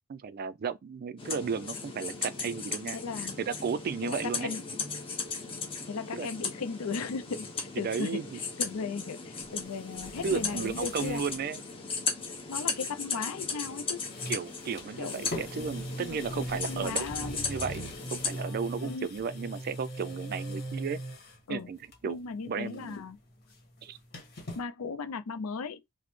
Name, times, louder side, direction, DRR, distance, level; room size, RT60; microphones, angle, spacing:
voice 1, 0.1-4.6 6.1-6.3 7.8-8.4 10.2-11.6 14.3-21.0 21.5-21.8 22.0-22.2 22.5-22.9 23.8-24.0, right 6 dB, 45° right, 0.3 m, -34 dB
sound 1, 1.2-18.4, left 4 dB, 25° left, 0.9 m, -37 dB
voice 2, 2.9-3.4 4.0-4.8 5.9-11.2 12.5-14.0 15.0-15.3 15.6-15.7 16.0-17.4 18.8-19.1 21.5-21.7 22.0-23.2 24.6-25.8, left 4 dB, 80° left, 0.5 m, -37 dB
sound 2, 9.4-11.4 11.7-11.8 13.5-13.8 14.0-21.4 21.8-22.3 22.5-24.6, equal, 45° left, 1.5 m, -41 dB
4.0 x 2.0 x 3.1 m
head